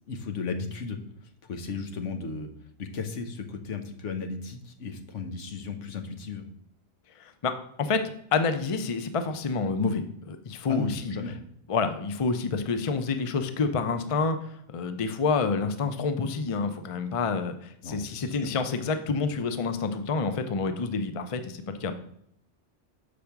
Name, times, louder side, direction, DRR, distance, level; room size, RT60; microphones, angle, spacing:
voice 1, 0.1-1.0 1.5-2.5 2.8-6.5 10.7-11.4 17.8-18.5, left 4 dB, 80° left, 6 dB, 1.3 m, -35 dB
voice 2, 7.2-8.0 8.3-11.1 11.7-21.9, left 4 dB, 40° left, 9 dB, 0.5 m, -28 dB
6.7 x 5.1 x 5.9 m, 0.70 s
omnidirectional pair, 1.2 m